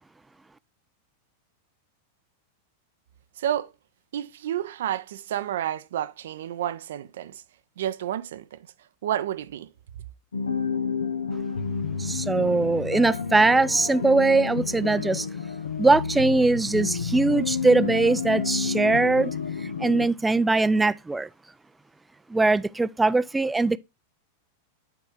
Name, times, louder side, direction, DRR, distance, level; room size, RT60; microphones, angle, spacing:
voice 1, 3.4-3.7 4.1-7.4 7.8-8.6 9.0-9.7, right 11 dB, 70° right, 0.5 m, -30 dB
sound 1, 10.3-20.1, left 5 dB, 80° left, 0.5 m, -30 dB
voice 2, 12.0-15.3 15.8-19.3 19.6-21.3 22.3-23.8, right 3 dB, 10° right, 0.4 m, -21 dB
9.2 x 3.5 x 3.5 m
hypercardioid pair, 95°, 0 cm